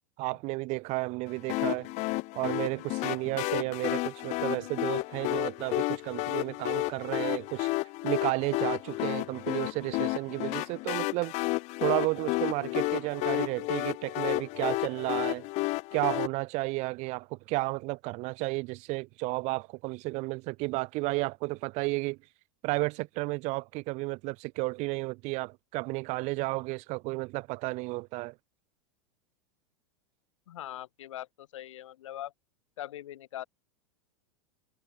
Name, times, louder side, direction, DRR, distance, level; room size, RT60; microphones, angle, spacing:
voice 1, 0.2-1.9 2.3-7.7 8.0-11.3 11.8-15.5 15.9-22.2 22.6-28.3, right 24 dB, 45° right, 0.6 m, -32 dB
sound 1, 1.5-16.3, left 23 dB, 45° left, 0.7 m, -31 dB
voice 2, 30.5-32.3 32.8-33.4, left 12 dB, 75° left, 1.5 m, -41 dB
hypercardioid pair, 100°, 16 cm